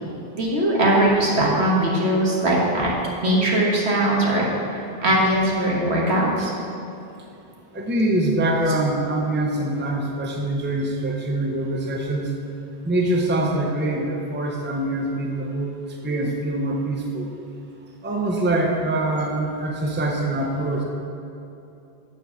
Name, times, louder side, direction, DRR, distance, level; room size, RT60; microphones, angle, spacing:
voice 1, 0.3-2.9 3.2-4.5 5.0-6.5, right 1 dB, 80° right, -4 dB, 1.7 m, -20 dB
voice 2, 7.7-12.3 12.8-15.7 16.0-17.3 18.0-20.8, right 1 dB, 10° right, 0 dB, 0.6 m, -24 dB
7.1 x 4.5 x 6.8 m, 2.8 s
omnidirectional pair, 1.1 m